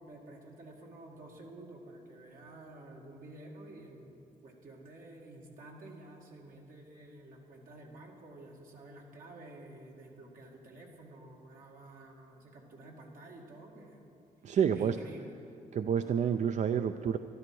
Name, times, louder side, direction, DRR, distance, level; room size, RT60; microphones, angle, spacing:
voice 1, 0.0-14.1 14.5-15.3, right 2 dB, 75° right, -1 dB, 2.3 m, -51 dB
voice 2, 14.4-15.0 15.7-17.2, right 8 dB, 55° right, 10 dB, 0.4 m, -29 dB
12.5 x 11.5 x 6.2 m, 2.8 s
cardioid pair, 85°, 14 cm